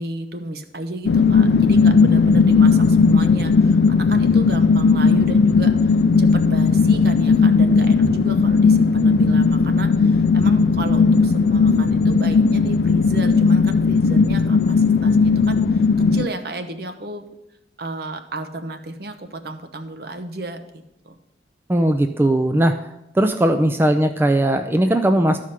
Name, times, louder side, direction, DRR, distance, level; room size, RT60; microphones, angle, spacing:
voice 1, 0.0-17.3 17.8-21.2, right 2 dB, 60° right, 7 dB, 0.9 m, -33 dB
sound 1, 1.0-16.3, left 4 dB, 65° left, 0.4 m, -16 dB
voice 2, 21.7-22.7 23.1-25.4, right 1 dB, 15° right, 7 dB, 0.4 m, -18 dB
12.5 x 4.8 x 5.7 m, 0.87 s
head